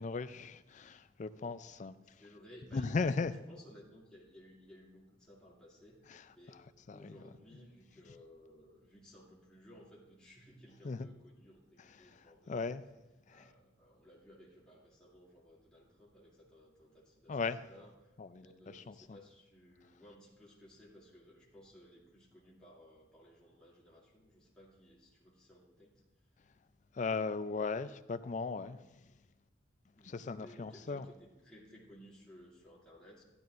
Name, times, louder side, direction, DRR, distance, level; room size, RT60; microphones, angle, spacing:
voice 1, 0.0-2.0 2.7-3.3 6.1-6.2 6.9-7.2 10.8-11.1 12.0-12.8 13.3-13.5 17.3-17.6 18.2-18.5 18.7-19.2 26.9-28.8 30.0-31.1, left 4 dB, 40° left, 0.4 m, -37 dB
voice 2, 2.0-6.6 6.9-12.6 13.3-26.0 30.0-33.2, equal, 5° left, 2.5 m, -58 dB
13.5 x 12.0 x 2.5 m
head